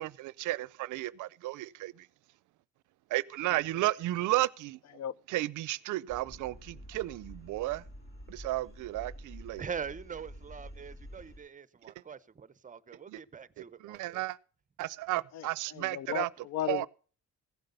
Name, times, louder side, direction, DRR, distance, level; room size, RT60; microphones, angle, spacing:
voice 1, 0.0-2.1 3.1-4.8 5.3-7.8 8.3-9.6 13.1-13.2 13.8-14.4 14.8-16.3 16.7-16.9, right 17 dB, 80° right, 0.5 m, -33 dB
voice 2, 3.5-3.8 4.9-5.2 15.3-16.9, left 11 dB, 60° left, 0.5 m, -37 dB
sound 1, 6.1-11.4, equal, 45° left, 4.9 m, -48 dB
voice 3, 9.6-14.2, right 6 dB, 25° right, 0.6 m, -43 dB
15.5 x 7.8 x 5.4 m
cardioid pair, 90°, 30 cm